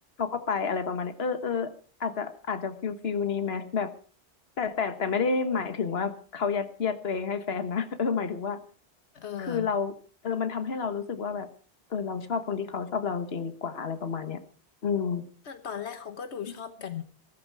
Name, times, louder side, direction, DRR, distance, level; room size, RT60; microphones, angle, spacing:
voice 1, 0.2-1.7 2.0-3.9 4.6-8.6 9.4-9.9 10.2-11.5 11.9-14.4 14.8-15.2, left 5 dB, 65° left, 9 dB, 1.6 m, -30 dB
voice 2, 9.1-9.7 15.4-17.0, left 8 dB, 85° left, 9 dB, 1.5 m, -37 dB
16.5 x 14.0 x 4.7 m, 0.41 s
omnidirectional pair, 1.1 m